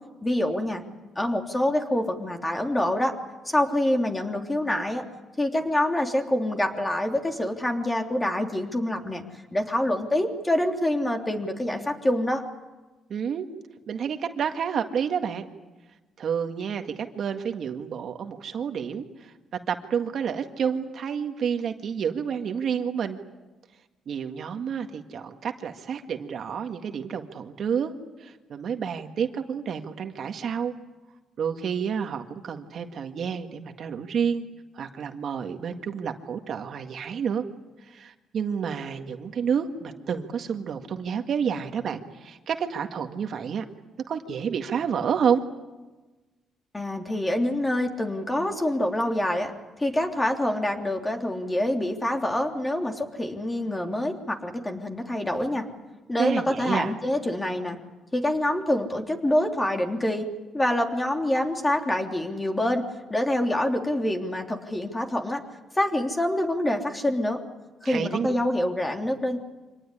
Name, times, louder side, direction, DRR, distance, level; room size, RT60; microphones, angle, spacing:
voice 1, 0.2-0.8 1.1-3.1 3.4-5.0 5.4-9.2 9.5-12.4 46.7-49.5 49.8-55.7 56.1-57.8 58.1-60.3 60.5-62.8 63.1-65.4 65.7-67.4 67.8-69.4, left 1 dB, 15° left, 3 dB, 3.2 m, -26 dB
voice 2, 13.1-13.5 13.9-15.5 16.2-19.3 19.7-23.2 24.1-27.9 28.2-30.7 31.4-34.4 34.7-37.4 37.8-43.6 44.1-45.4 56.2-56.9 67.8-68.3, right 7 dB, 60° right, 5 dB, 1.9 m, -29 dB
26.0 x 19.0 x 10.0 m, 1.2 s
cardioid pair, 90°, 0 cm